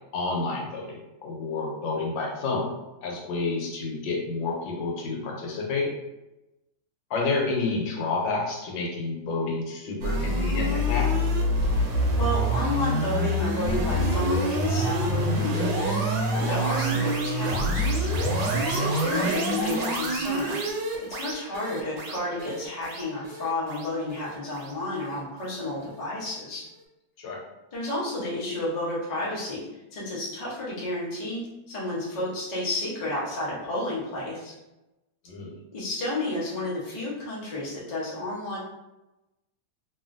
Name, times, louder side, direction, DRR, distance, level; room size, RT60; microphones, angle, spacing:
voice 1, 0.1-2.7 3.0-5.9 7.1-11.1 27.2-27.4 35.3-35.5, left 3 dB, 80° left, -1 dB, 1.4 m, -29 dB
sound 1, 10.0-25.2, equal, 75° right, 1.3 m, -26 dB
voice 2, 11.7-18.1 18.7-20.6 21.1-26.7 27.7-34.5 35.7-38.6, left 1 dB, 50° left, -6 dB, 0.5 m, -31 dB
3.0 x 2.4 x 2.5 m, 0.98 s
omnidirectional pair, 2.0 m